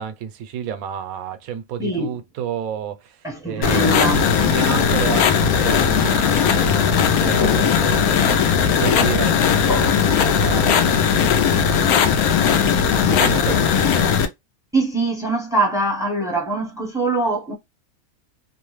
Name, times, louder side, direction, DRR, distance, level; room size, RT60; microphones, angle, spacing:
voice 1, 0.0-12.3 13.1-14.2, right 9 dB, 80° right, 1.0 m, -31 dB
voice 2, 1.8-2.1 3.2-4.3 14.7-17.5, right 2 dB, 5° right, 0.5 m, -22 dB
sound 1, 3.6-14.3, left 7 dB, 90° left, 1.1 m, -18 dB
sound 2, 9.7-11.5, left 4 dB, 50° left, 0.8 m, -32 dB
2.9 x 2.1 x 3.0 m
omnidirectional pair, 1.5 m